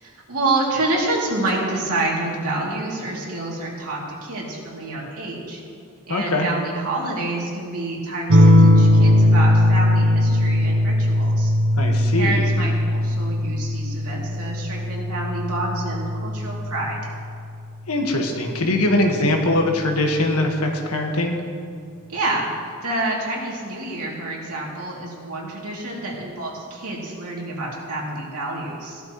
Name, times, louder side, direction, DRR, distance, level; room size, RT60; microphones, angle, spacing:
voice 1, 0.0-5.6 6.1-11.5 12.1-17.0 22.1-22.5 22.8-29.0, right 2 dB, 75° right, -3 dB, 2.8 m, -28 dB
voice 2, 6.1-6.5 11.8-12.5 17.9-21.4, left 1 dB, 75° left, 2 dB, 1.6 m, -22 dB
sound 1, 8.3-17.4 18.8-19.4, left 1 dB, 60° right, 0.9 m, -18 dB
16.5 x 12.5 x 3.1 m, 2.2 s
head